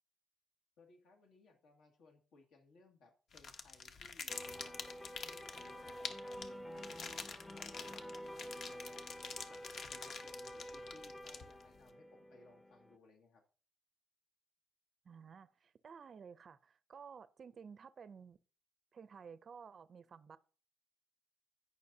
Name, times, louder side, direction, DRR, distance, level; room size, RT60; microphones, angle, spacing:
voice 1, 0.8-7.0 7.5-9.1 9.5-13.4, left 3 dB, 85° left, 2.0 m, -64 dB
sound 1, 3.3-11.8, left 5 dB, 55° left, 0.8 m, -47 dB
sound 2, 4.3-13.0, equal, 10° left, 0.5 m, -49 dB
voice 2, 15.0-18.4 18.9-20.4, right 6 dB, 40° right, 0.4 m, -54 dB
16.0 x 5.4 x 2.7 m
cardioid pair, 135°, 0 cm